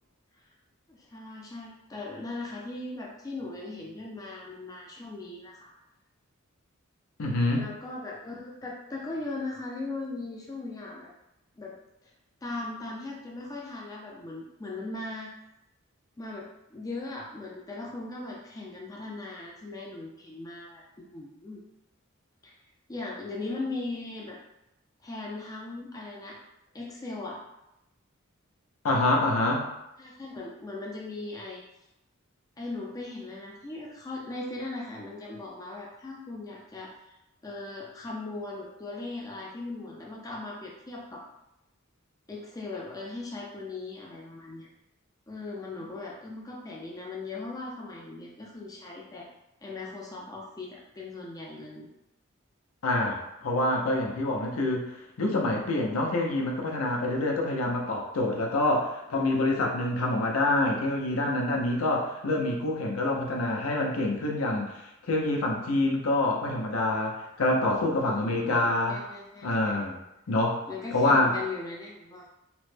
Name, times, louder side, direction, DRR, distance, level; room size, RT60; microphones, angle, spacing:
voice 1, 0.9-5.7 7.5-11.1 11.6-11.7 12.0-12.1 12.4-15.3 16.2-20.8 21.1-21.6 22.4-22.6 22.9-24.4 25.0-26.4 26.7-27.4 30.0-31.6 32.6-36.9 37.4-41.2 42.3-44.7 45.3-49.3 49.6-51.9 68.0-69.8 70.7-72.3, left 2 dB, 15° left, -3 dB, 0.4 m, -38 dB
voice 2, 7.2-7.7 28.8-29.7 52.8-69.0 69.4-70.0 70.3-70.6 70.9-71.3, left 2 dB, 75° left, 0 dB, 0.5 m, -26 dB
3.0 x 2.1 x 3.2 m, 0.88 s
head